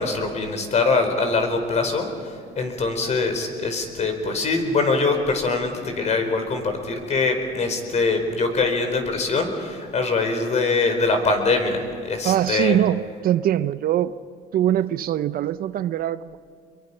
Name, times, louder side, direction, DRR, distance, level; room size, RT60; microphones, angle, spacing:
voice 1, 0.0-12.8, left 3 dB, 40° left, 5 dB, 4.7 m, -23 dB
voice 2, 12.2-14.2 14.5-16.4, right 11 dB, 60° right, 14 dB, 0.7 m, -22 dB
27.0 x 22.5 x 5.7 m, 2.3 s
cardioid pair, 110°, 17 cm